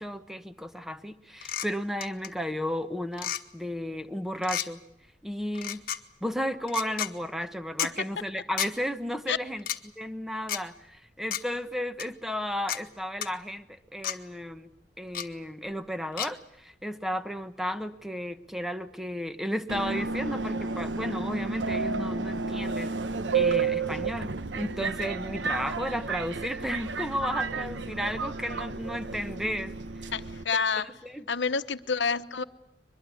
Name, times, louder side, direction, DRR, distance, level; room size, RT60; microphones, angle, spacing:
voice 1, 0.0-4.8 5.2-5.8 6.2-9.6 10.0-14.7 15.0-23.0 23.3-29.7 31.0-31.2, equal, ahead, 1.1 m, -33 dB
sound 1, 1.4-1.7 2.0-2.3 3.1-3.4 4.4-4.7 5.5-6.0 6.7-7.1 7.8-7.9 8.6-8.7 9.6-9.8 10.5-10.6 11.3-11.4 12.0-12.1 12.7-12.8 13.2-13.3 14.0-14.2 15.1-15.3 16.2-16.3, left 10 dB, 55° left, 1.3 m, -31 dB
Subway metro underground, 19.7-30.4, right 4 dB, 85° right, 1.0 m, -31 dB
voice 2, 30.1-30.9 31.3-32.4, left 5 dB, 80° left, 1.0 m, -28 dB
23.0 x 22.0 x 8.5 m
head